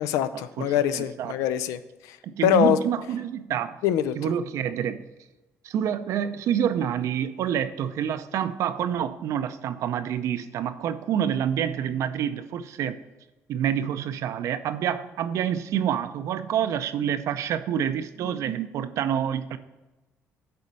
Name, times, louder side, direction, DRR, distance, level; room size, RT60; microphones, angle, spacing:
voice 1, 0.0-2.2 2.4-2.8 3.8-4.3, left 10 dB, 90° left, 13 dB, 0.4 m, -24 dB
voice 2, 0.6-1.3 2.2-3.8 4.2-5.1 5.6-13.0 13.5-19.6, right 9 dB, 70° right, 11 dB, 0.5 m, -27 dB
6.9 x 4.2 x 6.2 m, 1.1 s
cardioid pair, 85°, 5 cm